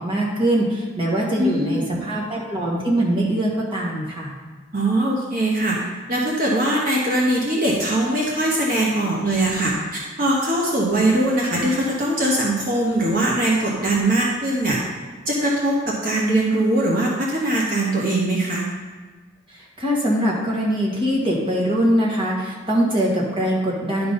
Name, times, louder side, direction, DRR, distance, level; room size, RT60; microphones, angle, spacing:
voice 1, 0.0-4.3 19.5-24.1, right 1 dB, 25° right, -4 dB, 1.7 m, -22 dB
voice 2, 1.4-2.0 4.7-5.8 6.1-14.8 15.3-18.6, right 1 dB, 45° right, -3 dB, 1.2 m, -21 dB
11.0 x 4.1 x 5.3 m, 1.4 s
head